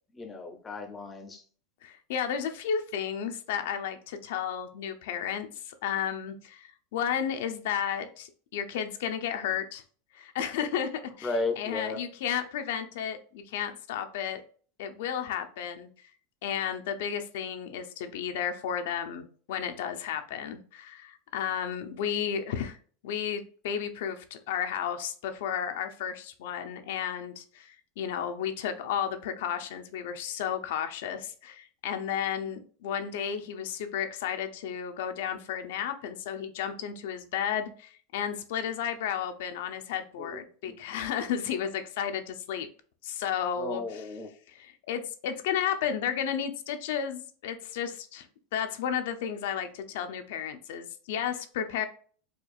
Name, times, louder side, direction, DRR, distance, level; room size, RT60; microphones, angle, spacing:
voice 1, 0.1-1.4 11.2-12.0 40.2-40.8 43.6-44.3, left 3 dB, 15° left, 6 dB, 0.5 m, -35 dB
voice 2, 1.8-9.8 10.1-14.4 14.8-15.9 16.4-22.8 23.0-42.7 43.0-44.0 44.5-48.3 48.5-51.9, left 8 dB, 70° left, 7 dB, 0.5 m, -33 dB
4.4 x 2.4 x 2.4 m, 0.43 s
supercardioid pair, 170°, 0 cm